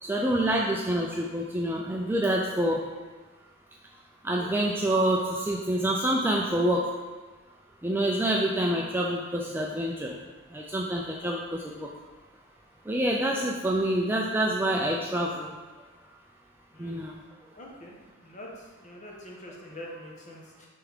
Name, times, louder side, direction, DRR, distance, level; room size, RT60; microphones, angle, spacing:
voice 1, 0.0-2.8 4.2-6.9 7.8-10.2 10.5-11.9 12.9-15.5 16.8-17.2, right 1 dB, 10° right, -2 dB, 0.4 m, -27 dB
voice 2, 17.5-17.9 18.2-18.5 18.8-20.7, left 1 dB, 35° left, -2 dB, 1.1 m, -44 dB
9.1 x 3.5 x 3.6 m, 1.3 s
head